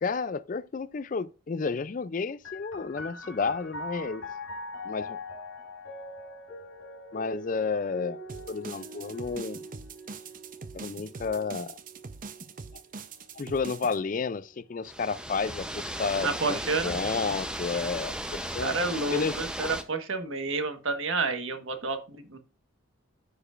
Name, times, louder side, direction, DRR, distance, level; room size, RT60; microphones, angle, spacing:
voice 1, 0.0-4.2 4.8-5.2 7.1-8.2 8.5-9.6 10.7-11.8 12.7-12.8 13.3-18.8 19.1-19.4, left 5 dB, 40° left, 0.4 m, -31 dB
sound 1, 2.4-15.7 16.5-17.3, left 1 dB, 75° left, 3.1 m, -44 dB
sound 2, 8.3-14.0, right 4 dB, 40° right, 0.6 m, -43 dB
sound 3, 14.8-19.8, right 1 dB, 5° right, 0.7 m, -35 dB
voice 2, 16.2-16.9 18.6-22.4, right 3 dB, 75° right, 1.4 m, -30 dB
14.5 x 4.9 x 2.5 m
head